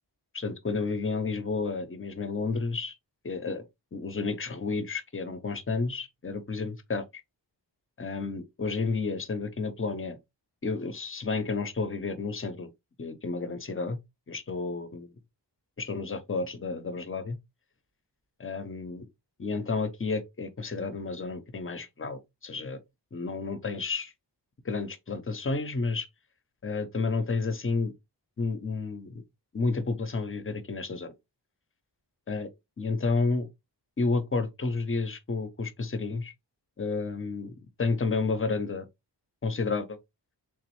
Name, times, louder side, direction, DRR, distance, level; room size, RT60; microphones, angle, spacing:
voice 1, 0.3-2.9 3.2-3.6 3.9-7.2 8.0-10.2 10.6-12.7 13.0-14.0 14.3-15.1 15.8-17.4 18.4-19.0 19.4-22.8 23.1-24.1 24.6-26.1 26.6-27.9 28.4-29.2 29.5-31.1 32.3-32.5 32.8-33.5 34.0-36.3 36.8-38.9 39.4-40.0, left 4 dB, 30° left, 0.6 m, -31 dB
3.5 x 3.0 x 3.0 m
wide cardioid pair, 100°, 42 cm